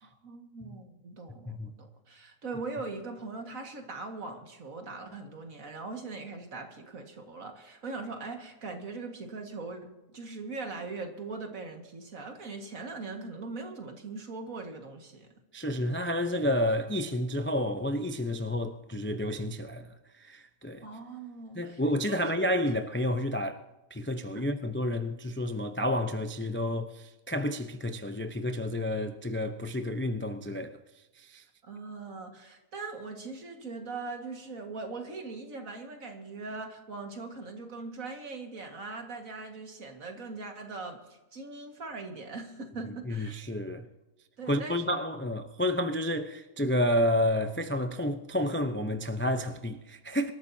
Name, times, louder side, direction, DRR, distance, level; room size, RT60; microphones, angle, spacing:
voice 1, 0.0-15.3 20.8-21.8 22.0-22.4 24.4-24.5 31.6-43.4 44.4-44.8, right 3 dB, 60° right, 2.3 m, -41 dB
voice 2, 15.5-20.9 21.5-23.6 23.9-30.8 31.2-31.4 43.1-43.9 44.5-50.3, left 1 dB, 15° left, 0.4 m, -30 dB
25.5 x 13.5 x 2.8 m
omnidirectional pair, 1.7 m